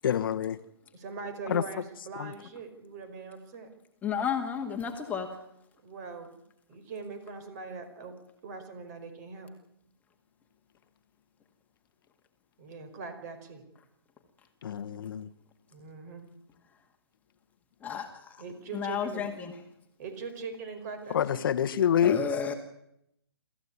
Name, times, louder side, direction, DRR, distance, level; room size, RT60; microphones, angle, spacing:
voice 1, 0.0-0.6 1.5-1.6 2.2-2.3 14.6-15.3 21.1-22.2, left 9 dB, 55° left, 9 dB, 1.3 m, -26 dB
voice 2, 0.9-3.7 5.8-6.4 6.7-8.1 8.4-9.5 12.6-13.6 15.7-16.3 18.4-19.3 20.0-21.4, right 4 dB, 40° right, 9 dB, 5.0 m, -41 dB
voice 3, 4.0-5.3 17.8-18.4 18.7-19.5 22.0-22.5, left 7 dB, 10° left, 3 dB, 2.0 m, -32 dB
24.5 x 14.5 x 9.8 m, 0.79 s
hypercardioid pair, 145°, 14 cm